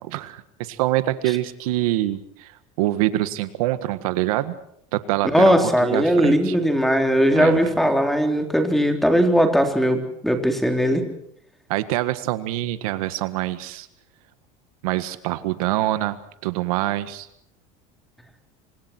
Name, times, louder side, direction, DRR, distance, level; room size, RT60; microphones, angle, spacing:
voice 1, 0.0-2.5 2.8-4.6 4.9-6.6 7.3-7.7 11.7-13.9 14.8-16.2 16.4-17.3, right 15 dB, 85° right, 12 dB, 1.7 m, -25 dB
voice 2, 5.3-11.0, equal, ahead, 4 dB, 3.6 m, -19 dB
28.0 x 26.0 x 4.5 m, 0.71 s
supercardioid pair, 130°, 18 cm